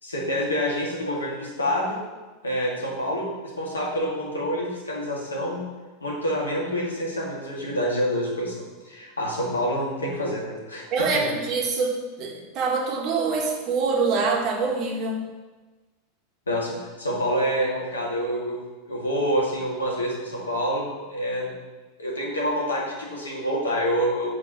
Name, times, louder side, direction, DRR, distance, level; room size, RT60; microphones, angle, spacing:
voice 1, 0.0-2.0 2.4-5.6 6.0-8.6 8.8-11.2 16.5-21.5 22.0-24.4, equal, 80° left, -3 dB, 2.1 m, -27 dB
voice 2, 10.9-15.2, right 4 dB, 40° right, 0 dB, 1.7 m, -25 dB
7.2 x 4.8 x 7.1 m, 1.2 s
figure-of-eight pair, 85°, 0 cm